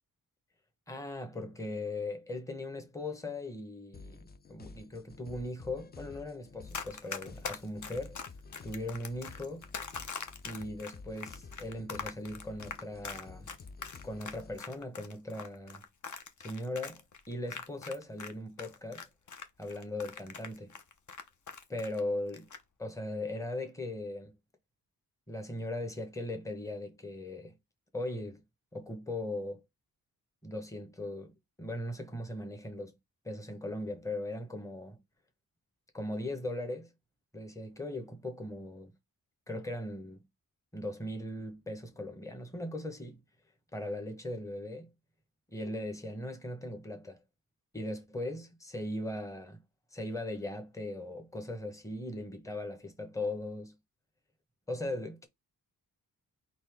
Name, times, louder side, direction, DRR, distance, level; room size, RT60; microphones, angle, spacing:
voice 1, 0.9-8.2 8.6-9.7 10.4-13.5 14.0-15.8 16.4-19.1 19.6-20.7 21.7-22.5 22.8-24.3 25.3-27.5 27.9-28.4 28.7-29.6 30.4-33.0 33.2-35.0 35.9-36.9 37.3-38.9 39.5-40.3 40.7-43.2 43.7-44.9 45.5-47.2 47.7-49.6 49.9-53.7 54.7-55.3, left 1 dB, 10° left, 1.2 m, -39 dB
sound 1, 3.9-14.6, left 4 dB, 25° left, 0.5 m, -51 dB
Run, 6.7-18.3 18.6-22.0 22.3-22.6, left 5 dB, 50° left, 0.9 m, -42 dB
4.1 x 3.0 x 3.5 m
cardioid pair, 75°, 37 cm